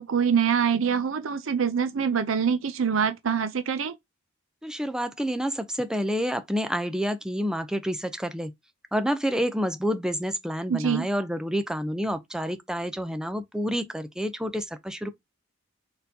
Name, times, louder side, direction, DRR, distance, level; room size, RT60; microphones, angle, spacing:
voice 1, 0.0-4.0 10.7-11.1, right 7 dB, 70° right, 0.5 m, -25 dB
voice 2, 4.6-8.5 8.9-15.1, equal, 5° right, 0.5 m, -28 dB
4.4 x 3.9 x 2.7 m
head